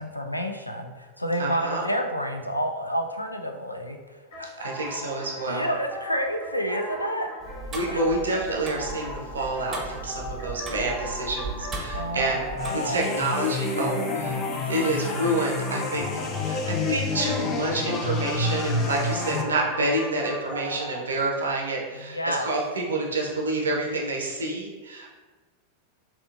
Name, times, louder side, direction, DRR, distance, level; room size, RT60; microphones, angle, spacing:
voice 1, 0.0-4.0 4.4-5.1 5.5-7.3 7.9-8.0 11.9-13.1 21.9-22.5, equal, 85° left, 4 dB, 0.3 m, -29 dB
voice 2, 1.4-1.9 4.6-5.7 7.7-12.4 12.7-16.1 16.4-25.1, right 2 dB, 70° right, -1 dB, 0.7 m, -28 dB
sound 1, 4.3-21.0, left 1 dB, 60° left, 1.3 m, -39 dB
Tick-tock, 7.4-12.7, right 2 dB, 20° right, 0.8 m, -37 dB
sound 2, 12.6-19.4, left 3 dB, 30° left, 0.5 m, -28 dB
4.2 x 2.7 x 2.5 m, 1.4 s
figure-of-eight pair, 90°, 0 cm